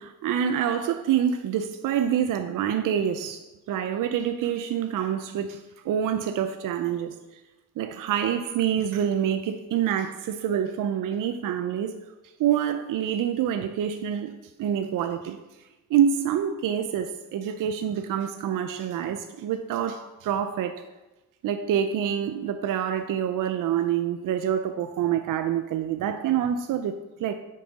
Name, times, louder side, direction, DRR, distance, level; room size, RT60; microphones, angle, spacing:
voice 1, 0.0-7.2 7.8-12.0 12.4-14.3 14.6-15.4 15.9-20.9 21.4-27.3, right 9 dB, 65° right, 0.5 m, -26 dB
6.4 x 5.3 x 4.0 m
cardioid pair, 100°, 36 cm